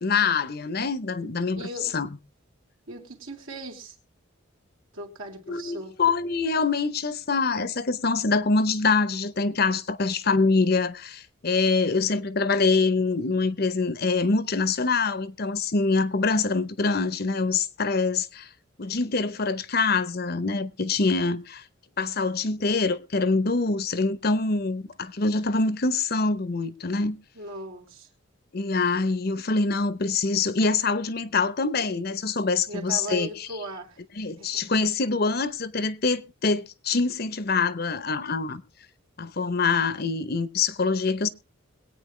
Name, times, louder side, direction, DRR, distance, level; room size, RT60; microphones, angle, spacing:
voice 1, 0.0-1.6 1.9-2.1 5.5-18.5 18.8-21.6 22.0-27.2 28.5-33.5 34.2-38.6 39.2-41.3, left 4 dB, 50° left, 0.8 m, -25 dB
voice 2, 1.5-2.0 2.9-4.0 4.9-5.9 27.3-28.1 32.7-34.0 34.4-34.6, right 1 dB, 75° right, 3.4 m, -38 dB
22.0 x 9.0 x 3.2 m
head